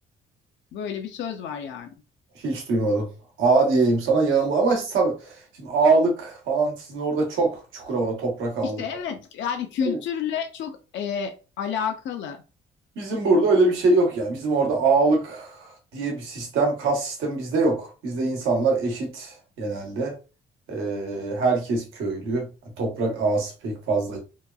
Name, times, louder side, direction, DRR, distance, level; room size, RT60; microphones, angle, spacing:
voice 1, 0.7-1.9 8.6-12.4, left 7 dB, 70° left, 0.5 m, -30 dB
voice 2, 2.3-3.1 3.4-8.8 13.0-20.1 20.7-22.5 22.8-24.2, right 3 dB, 80° right, 1.0 m, -23 dB
2.8 x 2.2 x 2.3 m
cardioid pair, 90°, 20 cm